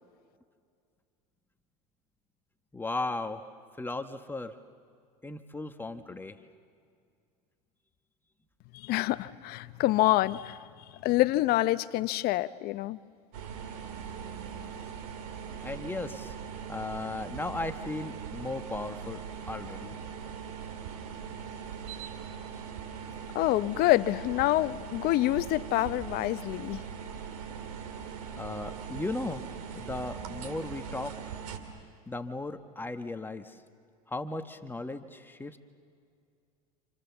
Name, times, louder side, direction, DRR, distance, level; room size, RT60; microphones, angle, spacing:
voice 1, 2.7-3.5 3.8-4.5 5.2-6.4 15.6-16.3 16.7-19.2 19.5-20.0 28.4-29.4 29.7-31.4 32.1-33.6 34.1-35.6, left 2 dB, 10° left, 1.2 m, -36 dB
voice 2, 8.8-10.6 11.0-13.0 23.3-26.8, left 17 dB, 50° left, 0.8 m, -26 dB
sound 1, 13.3-31.6, right 7 dB, 75° right, 3.1 m, -41 dB
29.5 x 27.5 x 7.1 m
supercardioid pair, 105°, 20 cm